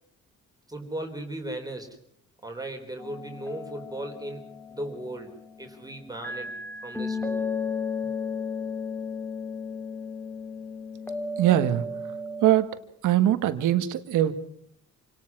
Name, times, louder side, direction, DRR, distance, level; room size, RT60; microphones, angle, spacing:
voice 1, 0.7-2.0 2.4-6.5 6.8-7.5, right 1 dB, 10° right, 3 dB, 3.9 m, -37 dB
sound 1, 3.0-5.7 6.2-12.5, left 4 dB, 5° left, 2.1 m, -34 dB
voice 2, 11.4-11.8 12.4-12.7 13.0-14.3, right 12 dB, 90° right, 10 dB, 1.7 m, -21 dB
27.5 x 18.5 x 6.1 m, 0.65 s
cardioid pair, 90°, 30 cm